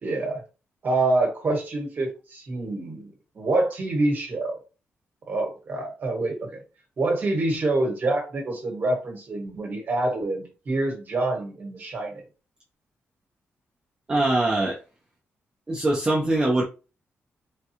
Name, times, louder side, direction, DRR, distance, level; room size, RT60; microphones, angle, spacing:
voice 1, 0.0-0.4 0.8-4.6 5.3-6.5 7.0-12.2, right 2 dB, 40° right, 1.2 m, -26 dB
voice 2, 14.1-14.8 15.7-16.6, right 2 dB, 20° right, 0.5 m, -22 dB
3.5 x 2.2 x 2.8 m
wide cardioid pair, 145°, 5 cm